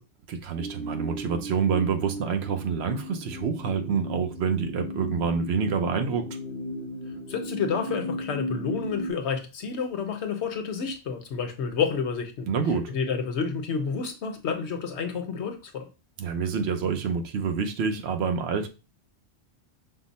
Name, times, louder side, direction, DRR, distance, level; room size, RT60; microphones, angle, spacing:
voice 1, 0.3-6.3 12.5-12.9 16.2-18.7, right 6 dB, 70° right, 0.9 m, -27 dB
sound 1, 0.6-9.1, equal, 55° right, 1.4 m, -36 dB
voice 2, 7.3-12.5 12.9-15.9, left 6 dB, 75° left, 1.1 m, -29 dB
5.6 x 2.1 x 4.0 m
omnidirectional pair, 1.1 m